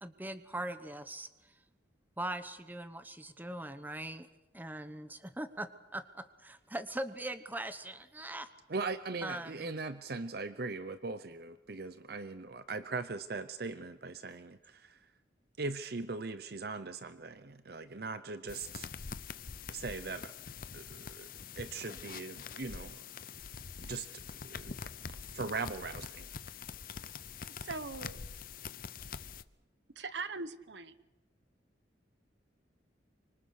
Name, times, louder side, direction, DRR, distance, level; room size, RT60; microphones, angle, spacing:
voice 1, 0.0-1.5 2.2-4.3 4.5-8.5 9.2-9.7, right 1 dB, 10° right, 11 dB, 1.0 m, -41 dB
voice 2, 8.7-15.1 15.6-18.9 19.7-20.3 20.7-21.3 21.6-23.0 23.8-24.7 25.3-26.3, right 3 dB, 55° right, 12 dB, 0.7 m, -40 dB
sound 1, 18.5-29.4, left 6 dB, 50° left, 0.7 m, -45 dB
voice 3, 27.6-28.2 29.9-31.0, right 4 dB, 75° right, 13 dB, 1.1 m, -41 dB
25.0 x 25.0 x 6.6 m, 1.1 s
head